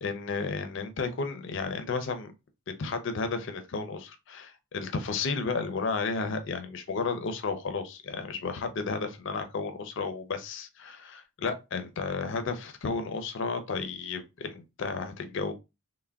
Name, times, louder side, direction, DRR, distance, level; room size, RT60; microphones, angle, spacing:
voice 1, 0.0-2.3 2.8-15.5, left 4 dB, 55° left, 0.4 m, -33 dB
3.3 x 2.1 x 2.3 m
head